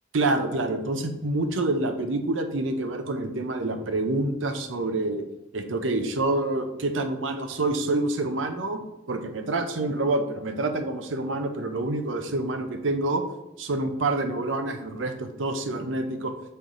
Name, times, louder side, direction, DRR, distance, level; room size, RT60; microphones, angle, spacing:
voice 1, 0.1-5.2 5.5-8.8 9.1-13.2 13.6-16.3, right 2 dB, 75° right, 7 dB, 0.7 m, -27 dB
6.7 x 4.5 x 3.7 m, 0.94 s
head